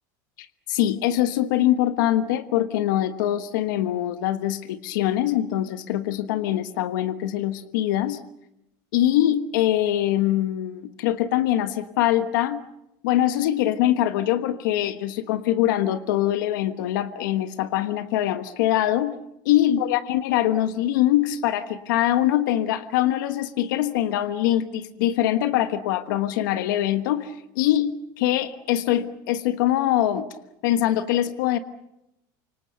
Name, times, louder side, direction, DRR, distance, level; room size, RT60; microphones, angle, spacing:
voice 1, 0.7-8.2 8.9-12.6 13.0-19.2 19.4-30.3 30.6-31.6, left 12 dB, 85° left, 10 dB, 1.3 m, -23 dB
29.0 x 26.0 x 6.7 m, 0.86 s
cardioid pair, 175°, 10 cm